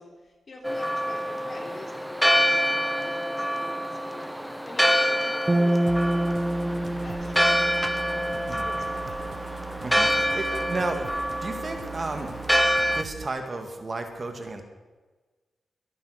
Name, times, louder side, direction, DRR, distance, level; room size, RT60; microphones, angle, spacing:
voice 1, 0.0-9.5, left 2 dB, 45° left, 2 dB, 3.3 m, -46 dB
Church bell, 0.6-13.0, equal, ahead, 0.8 m, -26 dB
sound 1, 5.5-8.8, right 1 dB, 20° right, 1.2 m, -27 dB
sound 2, 5.9-13.3, right 7 dB, 90° right, 0.7 m, -41 dB
voice 2, 9.8-12.4 12.9-14.6, right 2 dB, 35° right, 6 dB, 2.0 m, -33 dB
22.5 x 9.3 x 6.5 m, 1.3 s
wide cardioid pair, 110°, 0 cm